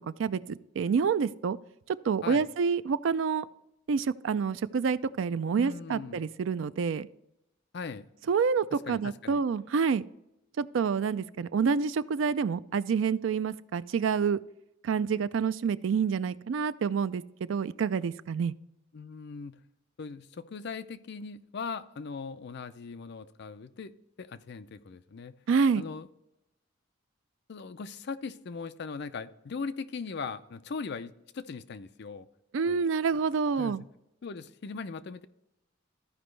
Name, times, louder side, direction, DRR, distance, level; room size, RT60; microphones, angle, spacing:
voice 1, 0.2-1.6 1.9-3.5 3.9-7.1 8.3-10.0 10.6-14.4 14.8-17.2 17.5-18.5 25.5-25.8 32.5-33.8, right 6 dB, 70° right, 15 dB, 0.4 m, -28 dB
voice 2, 5.5-6.2 7.7-8.1 8.7-9.4 18.9-19.6 20.0-23.9 24.2-25.3 25.8-26.1 27.5-32.3 32.7-32.8 33.6-33.8 34.2-35.3, left 5 dB, 55° left, 12 dB, 0.5 m, -39 dB
14.0 x 5.1 x 3.2 m, 0.86 s
head